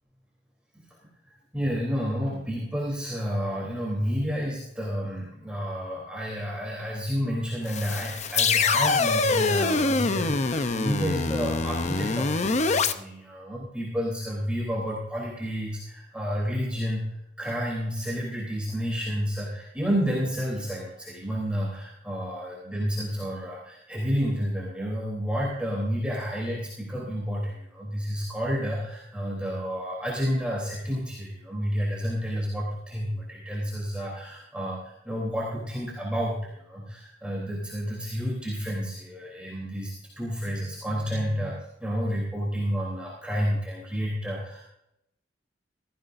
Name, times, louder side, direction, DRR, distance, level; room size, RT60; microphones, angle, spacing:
voice 1, 1.5-17.1 17.4-44.6, equal, 5° right, -4 dB, 3.3 m, -30 dB
sound 1, 7.7-12.9, left 4 dB, 40° left, 0.7 m, -24 dB
18.0 x 15.0 x 2.6 m, 0.81 s
head